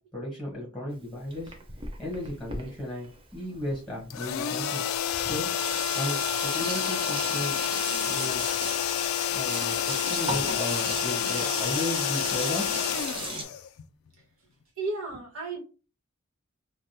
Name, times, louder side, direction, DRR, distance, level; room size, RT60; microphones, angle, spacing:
voice 1, 0.1-1.5 2.0-4.8 5.1-5.5 6.0-7.6 8.0-8.4 9.3-13.1, left 1 dB, ahead, 1.0 m, -35 dB
Sink (filling or washing), 0.9-4.0 4.8-4.9 5.1-13.4, right 3 dB, 25° right, 0.6 m, -36 dB
sound 1, 4.1-14.1, left 10 dB, 70° left, 0.3 m, -29 dB
voice 2, 14.8-15.6, right 3 dB, 70° right, 1.4 m, -33 dB
3.3 x 2.3 x 2.7 m
head